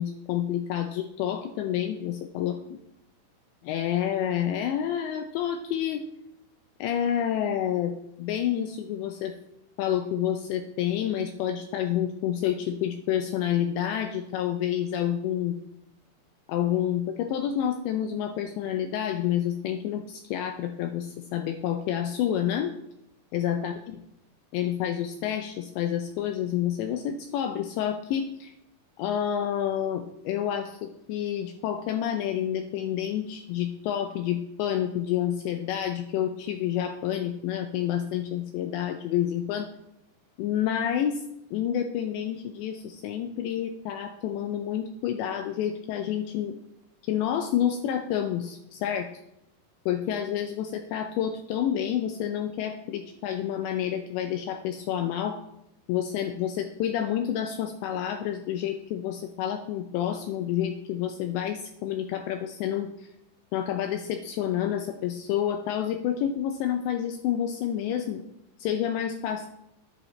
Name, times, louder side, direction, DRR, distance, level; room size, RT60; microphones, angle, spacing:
voice 1, 0.0-2.8 3.6-6.0 6.8-9.3 9.8-15.6 16.5-22.7 23.3-23.7 24.5-28.5 29.0-39.7 40.4-41.2 41.5-46.6 47.0-49.1 49.9-55.4 55.9-63.1 63.5-68.2 68.6-69.5, left 10 dB, 80° left, 6 dB, 2.6 m, -29 dB
11.5 x 10.5 x 3.2 m, 0.82 s
omnidirectional pair, 5.7 m